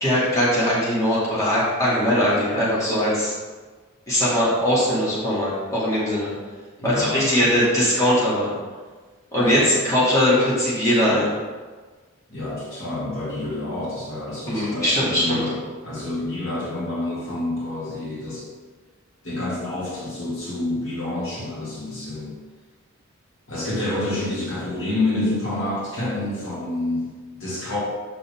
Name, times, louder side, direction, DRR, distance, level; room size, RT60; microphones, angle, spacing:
voice 1, 0.0-3.3 4.1-6.3 6.8-8.5 9.3-11.3 14.5-15.4, equal, 15° left, -8 dB, 1.8 m, -20 dB
voice 2, 6.8-7.5 9.4-9.8 12.3-15.6 15.8-18.5 19.2-22.4 23.5-27.8, left 2 dB, 75° left, -7 dB, 2.0 m, -28 dB
7.6 x 5.3 x 3.6 m, 1.4 s
head